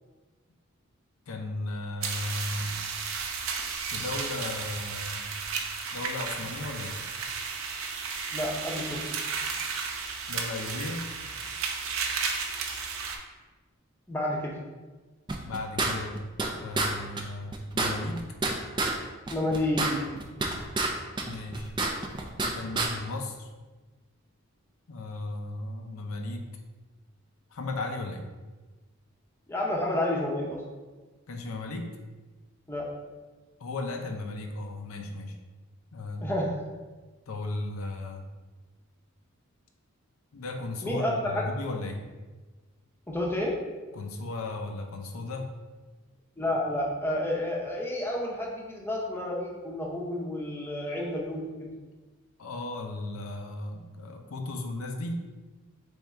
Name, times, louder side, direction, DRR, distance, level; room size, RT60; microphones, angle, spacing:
voice 1, 1.3-2.8 3.9-5.3 5.9-7.0 10.3-11.1 15.5-16.2 16.5-18.3 21.1-21.7 22.4-23.5 24.9-26.4 27.5-28.2 31.3-31.9 33.6-35.3 35.9-36.3 37.3-38.2 40.3-42.0 43.9-45.5 52.4-55.2, left 2 dB, 85° left, 3 dB, 0.6 m, -35 dB
sound 1, 2.0-13.2, right 5 dB, 75° right, 0.6 m, -33 dB
voice 2, 8.3-9.0 14.1-14.5 19.3-20.1 29.5-30.6 32.7-32.9 36.2-36.6 40.8-41.4 43.1-43.5 46.4-51.7, left 1 dB, 10° left, -2 dB, 0.7 m, -30 dB
sound 2, 15.3-16.5 16.8-16.9 17.2-17.3 17.5-18.9 19.3-20.9 21.2-22.5 22.8-22.9, right 3 dB, 20° right, 0.4 m, -28 dB
3.6 x 3.5 x 4.2 m, 1.3 s
head